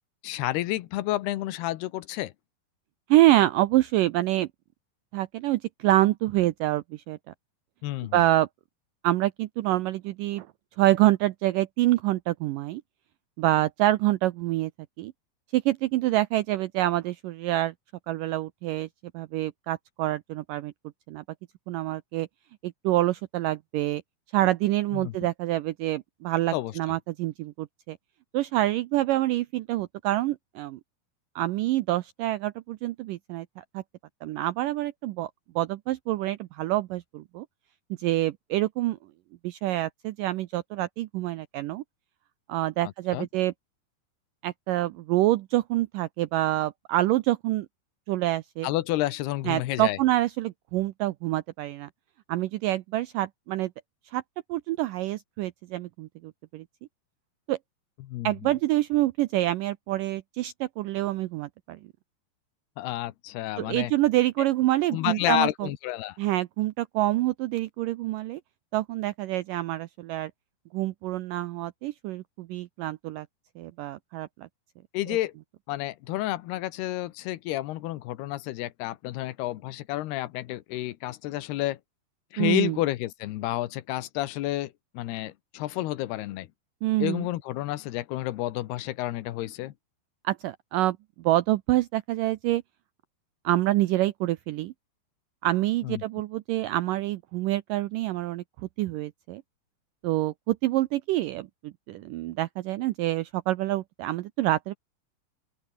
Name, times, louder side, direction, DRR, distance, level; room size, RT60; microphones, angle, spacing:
voice 1, 0.2-2.3 7.8-8.2 24.9-25.1 26.5-26.7 43.1-43.3 48.6-50.0 58.0-58.5 62.8-63.9 64.9-66.2 74.9-75.3 75.7-81.8 82.3-86.5 87.0-89.7 95.8-96.0, left 16 dB, 80° left, 3.1 m, -30 dB
voice 2, 3.1-4.5 5.1-7.2 8.1-8.5 9.0-10.5 10.8-12.8 13.4-14.7 15.0-15.1 15.5-17.7 18.1-18.9 19.1-20.7 21.1-21.2 21.7-22.3 22.6-24.0 24.3-28.0 28.3-30.8 31.4-33.8 34.2-35.3 35.6-37.5 38.0-39.0 39.4-41.8 42.5-43.5 44.4-47.7 48.1-48.7 49.5-51.9 52.3-53.7 54.1-54.2 54.5-56.7 57.5-57.6 58.2-61.8 63.6-65.7 66.2-68.4 68.7-70.3 70.7-73.3 73.6-74.5 75.1-75.2 82.4-82.8 86.8-87.3 90.2-92.6 93.4-94.7 95.4-98.4 98.8-99.4 100.0-104.7, right 16 dB, 85° right, 1.9 m, -26 dB
open air
omnidirectional pair, 4.7 m